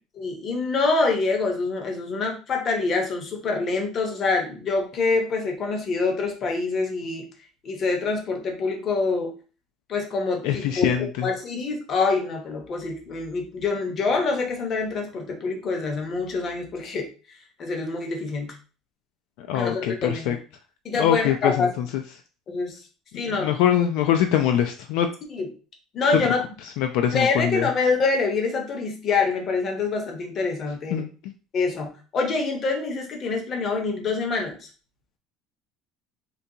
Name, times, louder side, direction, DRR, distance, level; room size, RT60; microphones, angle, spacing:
voice 1, 0.2-7.3 7.6-9.4 9.9-17.1 17.6-18.5 19.5-20.4 20.8-21.7 22.5-22.8 23.1-23.5 25.3-25.5 25.9-26.4 27.1-31.0 31.5-34.7, left 4 dB, 35° left, 2 dB, 0.7 m, -26 dB
voice 2, 10.4-11.3 19.4-20.4 20.9-21.8 23.3-25.1 26.8-27.7 30.9-31.3, left 10 dB, 70° left, 6 dB, 0.3 m, -23 dB
3.8 x 2.3 x 2.7 m, 0.36 s
cardioid pair, 160°, 0 cm